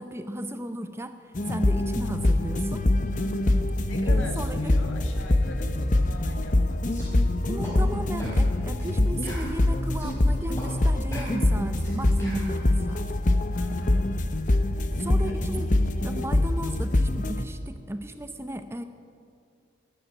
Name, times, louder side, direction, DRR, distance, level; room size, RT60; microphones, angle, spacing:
voice 1, 0.0-2.9 3.5-3.7 4.0-4.8 7.5-13.1 15.0-15.7 16.0-18.8, right 1 dB, 15° right, 9 dB, 0.7 m, -35 dB
sound 1, 1.3-17.4, left 1 dB, 40° left, 0.8 m, -24 dB
voice 2, 3.1-6.8 13.5-14.2 14.9-15.4, left 2 dB, 90° left, 3 dB, 2.1 m, -41 dB
sound 2, 6.9-7.1 7.6-7.8 8.2-8.4 8.8-8.9 9.2-10.2 10.6-10.7 11.1-12.5, equal, 15° left, 4.9 m, -40 dB
14.0 x 10.5 x 9.5 m, 2.3 s
head